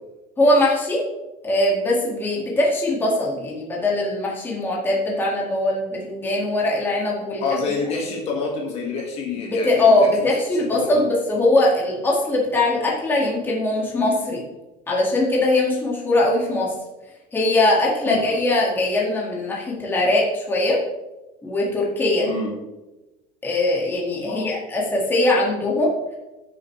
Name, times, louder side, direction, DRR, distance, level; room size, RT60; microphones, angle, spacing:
voice 1, 0.4-1.0 1.4-7.4 9.4-14.4 14.9-16.7 17.3-20.8 21.4-22.3 23.4-25.9, left 1 dB, 10° left, -4 dB, 2.0 m, -21 dB
voice 2, 7.4-10.3 10.7-11.0 18.1-18.3 22.2-22.5 24.3-24.5, left 4 dB, 40° left, -1 dB, 1.8 m, -27 dB
14.5 x 6.8 x 3.2 m, 1.0 s
cardioid pair, 180°, 16 cm